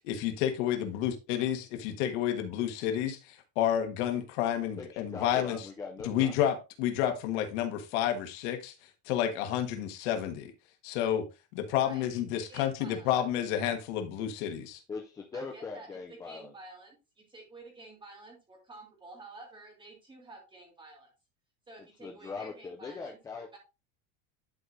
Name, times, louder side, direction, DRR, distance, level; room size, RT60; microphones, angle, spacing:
voice 1, 0.0-5.7 6.0-8.7 9.1-10.5 10.8-11.3 11.5-14.8, left 10 dB, 70° left, 1.5 m, -30 dB
voice 2, 4.8-6.4 14.9-16.5 21.8-23.6, left 4 dB, 10° left, 0.3 m, -41 dB
voice 3, 12.5-13.1 15.3-16.0 16.2-21.1 21.7-23.6, right 2 dB, 15° right, 2.8 m, -50 dB
11.0 x 4.7 x 2.5 m
cardioid pair, 160°, 36 cm